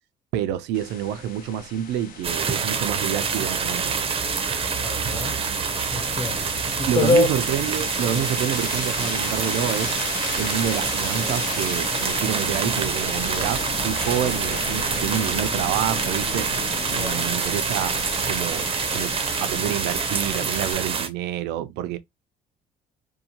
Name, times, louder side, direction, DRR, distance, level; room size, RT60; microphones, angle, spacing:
voice 1, 0.3-4.0 6.9-9.9 10.4-16.5 16.9-18.0 18.3-22.0, right 11 dB, 85° right, 0.5 m, -28 dB
sound 1, 0.7-20.7, left 5 dB, 55° left, 0.8 m, -35 dB
sound 2, 2.2-21.1, right 5 dB, 35° right, 0.6 m, -26 dB
voice 2, 4.8-5.4 5.9-6.4 6.8-7.3 8.1-8.3 16.9-17.2, left 3 dB, 25° left, 0.4 m, -24 dB
2.7 x 2.2 x 2.8 m
cardioid pair, 110°, 17 cm